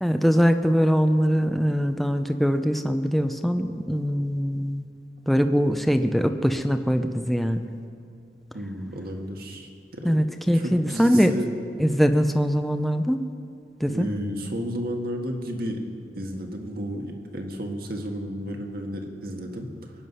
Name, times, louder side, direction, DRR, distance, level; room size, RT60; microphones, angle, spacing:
voice 1, 0.0-4.8 5.3-7.7 10.0-11.4 11.8-13.2 13.8-14.1, equal, ahead, 7 dB, 0.6 m, -22 dB
voice 2, 8.5-10.2 10.5-11.5 13.9-15.8 16.2-19.9, equal, 60° right, 2 dB, 1.7 m, -32 dB
23.0 x 9.6 x 5.6 m, 2.3 s
head